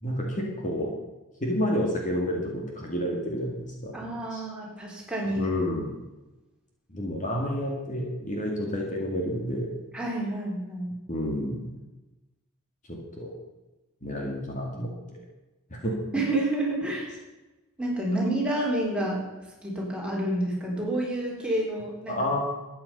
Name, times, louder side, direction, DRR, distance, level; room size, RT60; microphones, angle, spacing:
voice 1, 0.0-0.9 1.4-4.0 4.3-4.4 5.3-5.9 6.9-9.7 11.1-11.6 12.9-13.3 14.0-14.9 15.7-15.9 22.1-22.4, left 1 dB, 35° left, 0 dB, 2.1 m, -29 dB
voice 2, 3.9-5.5 9.9-10.9 16.1-17.2 17.8-19.2 19.6-22.4, right 1 dB, 5° right, -4 dB, 3.5 m, -29 dB
13.5 x 9.4 x 5.4 m, 1.1 s
head